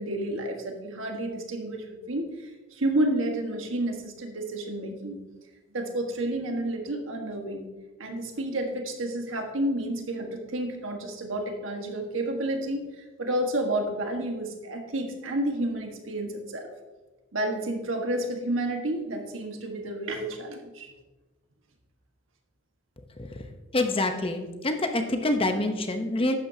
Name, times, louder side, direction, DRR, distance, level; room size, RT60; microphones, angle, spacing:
voice 1, 0.0-5.2 5.7-7.7 8.0-16.7 17.3-20.9, right 1 dB, 80° right, 3 dB, 1.5 m, -30 dB
voice 2, 23.7-26.3, left 2 dB, 30° left, 6 dB, 0.9 m, -26 dB
12.0 x 8.9 x 2.8 m, 1.2 s
head